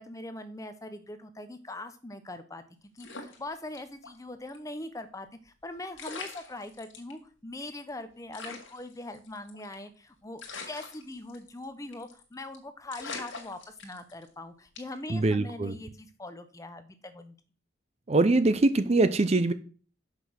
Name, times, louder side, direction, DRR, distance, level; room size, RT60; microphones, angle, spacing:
voice 1, 0.0-2.6 3.0-17.3, left 2 dB, 15° left, 0.7 m, -42 dB
sound 1, 3.0-4.2 4.5-4.6 5.6-5.7 6.0-7.1 7.6-7.7 7.9-8.0 8.3-9.9 10.4-11.6 11.9-12.2 12.5-12.6 12.9-14.3 14.8-15.1, left 4 dB, 70° left, 1.7 m, -43 dB
voice 2, 15.1-15.8 18.1-19.5, right 2 dB, 30° right, 0.4 m, -23 dB
6.0 x 5.7 x 6.2 m
head